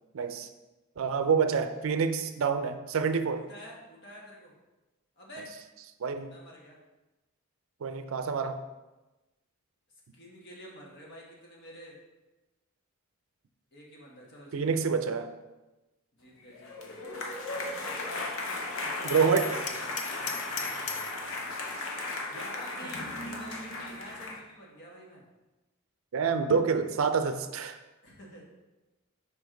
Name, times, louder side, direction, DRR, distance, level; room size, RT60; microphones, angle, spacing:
voice 1, 0.1-0.5 1.0-3.5 6.0-6.3 7.8-8.6 14.5-15.3 19.0-19.6 26.1-27.8, right 5 dB, 75° right, 9 dB, 0.4 m, -27 dB
voice 2, 3.4-4.5 5.2-5.6 6.3-6.8 10.1-12.0 13.7-14.9 16.1-17.0 18.8-19.8 22.3-25.2 28.0-28.4, equal, 55° left, -3 dB, 1.5 m, -48 dB
sound 1, 16.5-24.4, left 2 dB, 75° left, 0.9 m, -36 dB
Hammer, 19.1-21.2, left 6 dB, 35° left, 0.5 m, -37 dB
5.3 x 4.9 x 3.8 m, 1.1 s
head